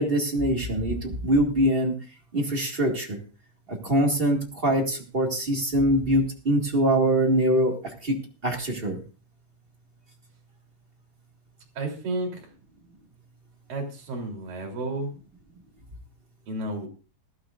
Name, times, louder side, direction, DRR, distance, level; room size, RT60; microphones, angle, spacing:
voice 1, 0.0-1.9 2.3-3.2 3.7-8.2 8.4-9.0, right 1 dB, 30° right, 1 dB, 1.0 m, -23 dB
voice 2, 11.7-12.5 13.7-15.1 16.5-16.9, right 2 dB, 55° right, 1 dB, 4.9 m, -32 dB
19.5 x 13.0 x 2.5 m, 0.34 s
omnidirectional pair, 4.8 m